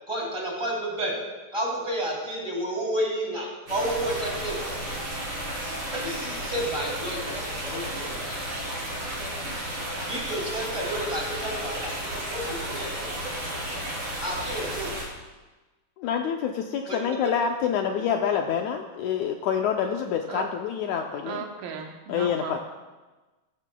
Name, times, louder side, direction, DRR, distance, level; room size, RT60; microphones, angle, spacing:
voice 1, 0.1-1.1 1.5-4.6 5.9-8.3 10.1-13.1 14.2-15.0 16.9-17.2, right 1 dB, 10° right, 1.9 m, -31 dB
sound 1, 3.7-15.0, right 1 dB, 35° right, 3.9 m, -33 dB
voice 2, 16.0-21.4 22.1-22.6, left 8 dB, 80° left, 1.7 m, -27 dB
voice 3, 21.3-22.6, right 6 dB, 85° right, 2.7 m, -36 dB
14.0 x 14.0 x 2.3 m
omnidirectional pair, 3.9 m